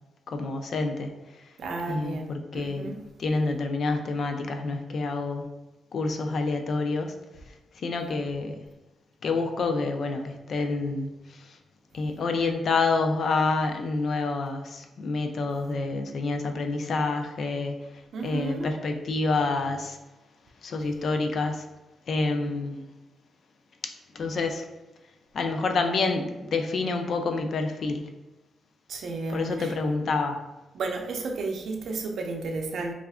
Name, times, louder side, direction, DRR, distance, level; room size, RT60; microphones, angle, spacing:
voice 1, 0.3-1.1 1.9-2.9 3.2-5.5 5.9-7.1 7.8-8.5 9.2-11.6 11.9-17.7 18.2-20.0 20.6-21.6 22.1-22.8 23.8-24.6 25.3-28.1 29.3-30.4, left 3 dB, 50° left, 5 dB, 0.4 m, -28 dB
voice 2, 1.6-3.0 18.1-18.7 28.9-29.7 30.7-32.9, right 3 dB, 65° right, 2 dB, 0.5 m, -32 dB
3.3 x 2.4 x 3.5 m, 1.1 s
wide cardioid pair, 150°, 0 cm